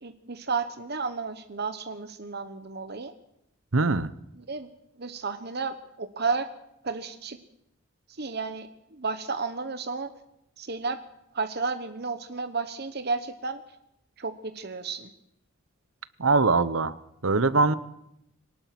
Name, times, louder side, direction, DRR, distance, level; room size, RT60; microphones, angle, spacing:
voice 1, 0.0-3.1 4.5-4.7 5.0-6.5 6.8-7.4 8.2-10.1 10.6-11.0 11.3-13.6 14.2-15.1, right 4 dB, 55° right, 8 dB, 1.2 m, -32 dB
voice 2, 3.7-4.1 16.2-17.0 17.2-17.7, right 3 dB, 80° right, 15 dB, 1.0 m, -22 dB
23.5 x 19.0 x 6.0 m, 0.81 s
head